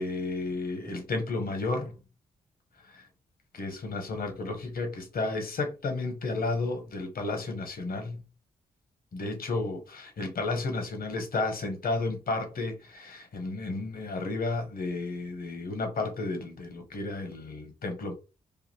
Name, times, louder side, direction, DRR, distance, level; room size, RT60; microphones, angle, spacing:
voice 1, 0.0-2.0 2.8-3.1 3.5-8.2 9.1-18.1, left 3 dB, 65° left, 1.2 m, -32 dB
4.9 x 2.5 x 2.9 m
supercardioid pair, 45°, 16 cm